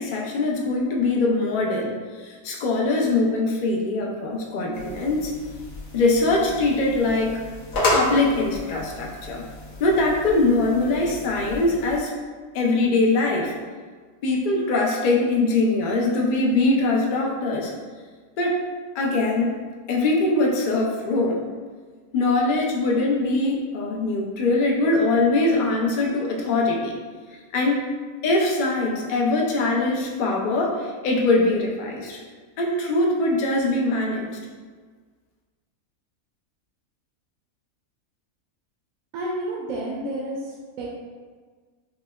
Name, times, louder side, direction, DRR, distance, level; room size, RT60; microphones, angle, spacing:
voice 1, 0.0-5.3 5.9-7.5 7.9-9.4 9.8-12.1 12.5-13.5 14.2-17.7 18.4-18.6 18.9-19.5 19.9-21.4 22.1-27.0 27.5-27.8 28.2-32.2 32.6-34.4, left 2 dB, 60° left, -1 dB, 0.5 m, -22 dB
sound 1, 4.7-12.0, left 1 dB, 75° left, 1.2 m, -31 dB
voice 2, 39.1-40.9, right 1 dB, 80° right, -4 dB, 1.0 m, -30 dB
6.1 x 2.1 x 2.2 m, 1.5 s
omnidirectional pair, 1.5 m